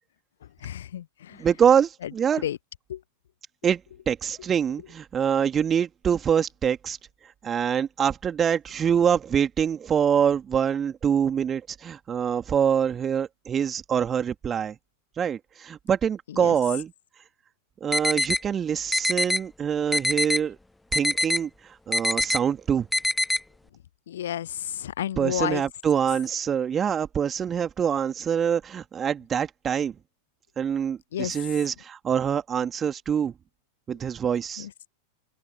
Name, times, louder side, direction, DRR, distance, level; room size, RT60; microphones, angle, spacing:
voice 1, 0.6-1.5 2.4-2.6 2.9-3.0 16.3-16.5 24.1-25.6 31.1-31.3 34.6-34.7, left 11 dB, 60° left, 0.6 m, -31 dB
voice 2, 1.4-2.4 3.6-3.8 4.1-7.0 7.4-14.7 15.2-16.9 17.8-20.6 20.9-21.5 21.9-22.9 25.2-29.9 30.6-33.3 33.9-34.7, right 8 dB, 25° right, 2.7 m, -25 dB
sound 1, 17.9-18.4 18.9-19.4 19.9-20.4 20.9-21.4 21.9-22.4 22.9-23.4, left 2 dB, 5° left, 0.3 m, -23 dB
open air
figure-of-eight pair, 90°, 0 cm